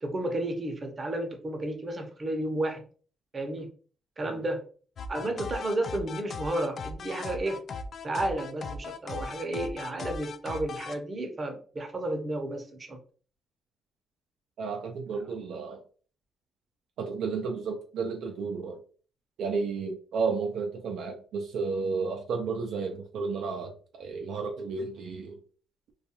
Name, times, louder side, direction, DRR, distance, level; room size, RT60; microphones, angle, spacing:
voice 1, 0.0-2.8 3.3-3.7 4.2-4.6 5.1-7.6 8.0-13.0, right 1 dB, 30° right, 4 dB, 0.7 m, -32 dB
sound 1, 5.0-11.0, left 4 dB, 55° left, 0.3 m, -38 dB
voice 2, 14.6-15.8 17.0-18.8 19.4-25.4, right 4 dB, 75° right, 3 dB, 0.4 m, -32 dB
2.3 x 2.3 x 2.8 m, 0.40 s
cardioid pair, 90°, 0 cm